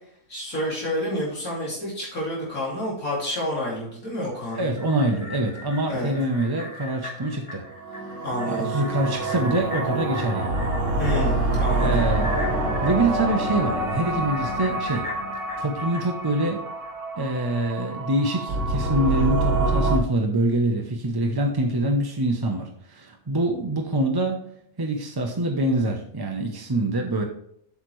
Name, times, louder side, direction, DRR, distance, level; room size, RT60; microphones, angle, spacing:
voice 1, 0.3-4.7 5.9-6.1 8.2-8.7 11.0-12.0, left 1 dB, 75° left, -6 dB, 3.1 m, -29 dB
sound 1, 4.3-16.9 17.3-17.4, left 2 dB, 30° left, 2.2 m, -39 dB
voice 2, 4.6-7.6 8.5-10.7 11.8-12.5 12.8-15.1 15.6-16.7 17.1-24.4 24.8-27.2, right 1 dB, 25° right, 2 dB, 0.5 m, -25 dB
sound 2, 7.7-20.0, right 2 dB, 65° right, 1.6 m, -26 dB
8.3 x 6.5 x 3.1 m, 0.68 s
omnidirectional pair, 1.5 m